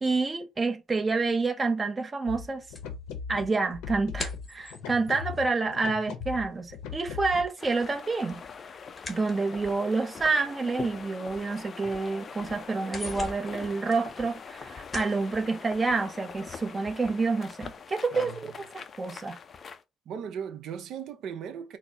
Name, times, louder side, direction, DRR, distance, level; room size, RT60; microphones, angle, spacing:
voice 1, 0.0-2.6 3.3-8.4 9.1-18.3 19.0-19.4, right 3 dB, 25° right, 0.7 m, -28 dB
sound 1, 2.3-7.5, left 6 dB, 85° left, 0.7 m, -39 dB
sound 2, 2.7-6.5 6.7-10.0 10.7-10.8 11.3-11.4 11.7-12.3 12.6-14.6 14.9-15.3, left 2 dB, 20° left, 0.9 m, -42 dB
sound 3, 7.6-19.8, left 6 dB, 40° left, 0.4 m, -43 dB
voice 2, 18.1-18.5 20.1-21.8, right 7 dB, 65° right, 0.6 m, -37 dB
4.0 x 2.0 x 3.4 m
cardioid pair, 100°, 0 cm